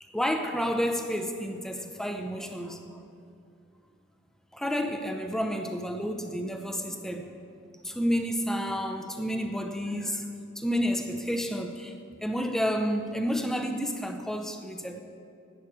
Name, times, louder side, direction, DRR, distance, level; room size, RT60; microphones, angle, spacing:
voice 1, 0.0-3.0 4.5-7.3 7.8-10.3 10.6-11.9 12.2-15.0, equal, ahead, 0.5 m, -30 dB
11.5 x 8.5 x 4.8 m
head